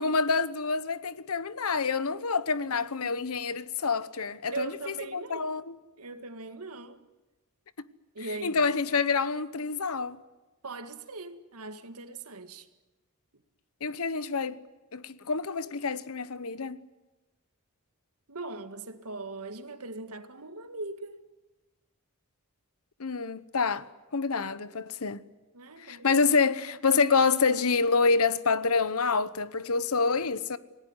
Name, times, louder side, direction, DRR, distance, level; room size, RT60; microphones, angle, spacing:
voice 1, 0.0-5.8 8.4-10.2 13.8-14.6 14.9-16.8 23.0-25.2 25.8-30.6, left 4 dB, 75° left, 1.0 m, -27 dB
voice 2, 4.5-5.6 6.0-7.0 8.1-8.6 10.6-12.7 18.3-21.2 25.5-26.2, right 3 dB, 85° right, 1.9 m, -40 dB
27.5 x 19.0 x 9.7 m
head